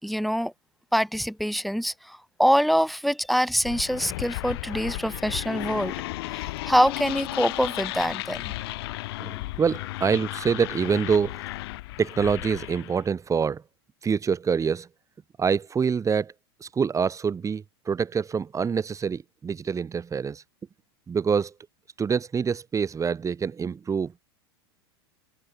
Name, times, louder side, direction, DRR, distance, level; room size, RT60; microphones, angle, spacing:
voice 1, 0.0-0.5 0.9-6.0 6.3-8.5, equal, ahead, 5.9 m, -25 dB
sound 1, 3.6-13.0, left 19 dB, 65° left, 6.4 m, -34 dB
voice 2, 9.2-11.4 12.0-13.6 14.0-14.9 15.4-16.3 16.6-20.4 21.1-21.5 22.0-24.1, right 6 dB, 25° right, 5.2 m, -26 dB
hypercardioid pair, 95°, 14 cm